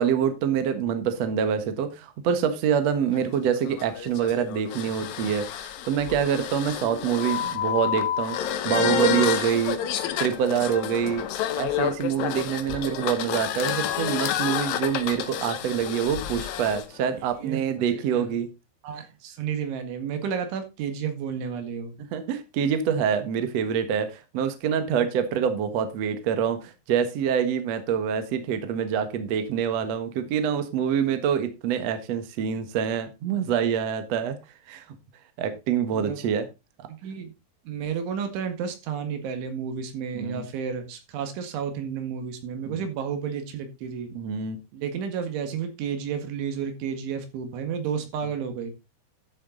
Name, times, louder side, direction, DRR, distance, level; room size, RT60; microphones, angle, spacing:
voice 1, 0.0-8.4 8.6-9.8 10.2-11.3 11.6-18.5 22.1-34.3 34.7-34.8 35.4-36.5 40.1-40.4 42.6-42.8 44.1-44.6, right 8 dB, 65° right, 1.6 m, -26 dB
sound 1, 3.1-16.8, left 10 dB, 70° left, 2.2 m, -29 dB
voice 2, 17.9-18.3 18.8-22.0 35.9-36.2 36.9-37.3 37.7-44.1 44.7-48.7, right 7 dB, 85° right, 4.3 m, -31 dB
12.0 x 7.3 x 3.9 m
omnidirectional pair, 5.2 m